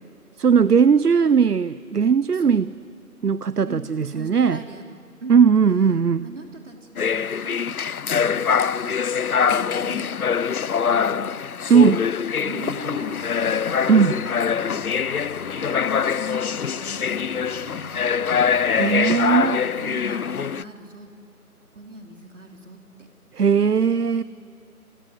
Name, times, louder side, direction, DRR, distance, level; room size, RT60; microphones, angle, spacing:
voice 1, 0.4-2.7 3.2-4.6 5.3-6.3 11.7-12.1 13.9-14.2 18.7-19.6 23.3-24.2, right 6 dB, 85° right, 18 dB, 0.7 m, -18 dB
voice 2, 1.1-1.7 2.3-2.6 3.6-5.4 6.2-9.0 9.3-10.2 10.9-11.5 12.4-13.7 14.6-14.9 15.9-18.5 19.8-21.1 21.7-23.1 24.1-24.2, right 2 dB, 50° right, 3 dB, 3.2 m, -41 dB
sound 1, 7.0-20.6, left 7 dB, 70° left, 0.6 m, -24 dB
sound 2, 12.7-20.0, left 2 dB, 40° left, 2.1 m, -41 dB
27.5 x 21.5 x 9.6 m, 2.6 s
figure-of-eight pair, 160°, 46 cm